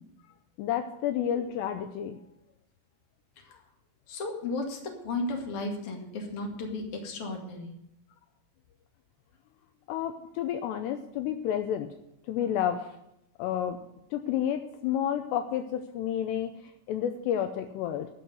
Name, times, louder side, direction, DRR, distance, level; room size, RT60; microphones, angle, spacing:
voice 1, 0.6-2.2 9.9-11.9 12.3-12.9 13.4-13.8 14.1-16.5 16.9-18.1, left 10 dB, 80° left, 7 dB, 2.6 m, -30 dB
voice 2, 4.1-7.7, left 2 dB, 45° left, 1 dB, 2.1 m, -34 dB
11.5 x 6.5 x 9.4 m, 0.82 s
omnidirectional pair, 5.3 m